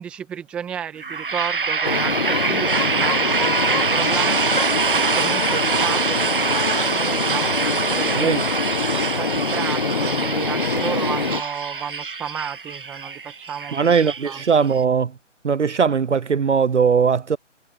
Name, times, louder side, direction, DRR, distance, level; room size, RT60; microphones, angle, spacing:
voice 1, 0.0-8.2 9.2-14.4, right 8 dB, 5° right, 1.7 m, -32 dB
sound 1, 1.0-14.8, right 5 dB, 45° right, 1.7 m, -24 dB
sound 2, 1.8-11.4, left 4 dB, 35° left, 1.1 m, -25 dB
voice 2, 13.7-15.1 15.4-17.4, right 6 dB, 65° right, 0.7 m, -19 dB
figure-of-eight pair, 165°, 38 cm